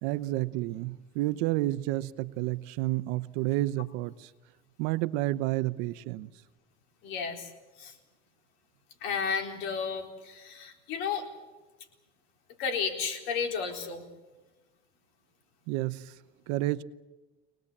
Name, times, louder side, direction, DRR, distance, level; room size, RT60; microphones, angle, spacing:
voice 1, 0.0-4.3 4.8-6.3 15.7-16.1 16.5-16.8, right 17 dB, 85° right, 0.9 m, -30 dB
voice 2, 7.0-7.5 7.8-8.0 9.0-11.3 12.6-14.0, left 6 dB, 75° left, 4.1 m, -32 dB
25.0 x 19.0 x 8.6 m
cardioid pair, 115°, 19 cm